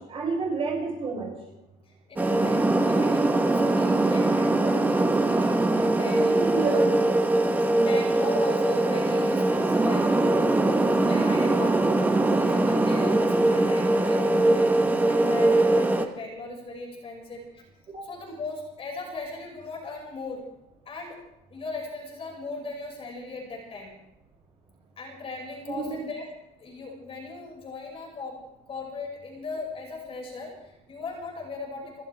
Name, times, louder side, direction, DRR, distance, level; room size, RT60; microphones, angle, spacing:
voice 1, 0.1-1.3 6.2-6.9 25.7-26.0, right 4 dB, 35° right, -2 dB, 6.7 m, -29 dB
voice 2, 1.9-6.8 7.7-10.4 11.1-14.7 15.1-17.6 18.0-20.4 20.9-21.2 21.5-23.9 25.0-26.3 26.6-28.4 28.7-32.0, left 3 dB, 35° left, -1 dB, 5.7 m, -38 dB
sound 1, 2.2-16.1, right 2 dB, 10° right, 1.1 m, -22 dB
29.5 x 14.0 x 3.4 m, 0.88 s
cardioid pair, 160°, 16 cm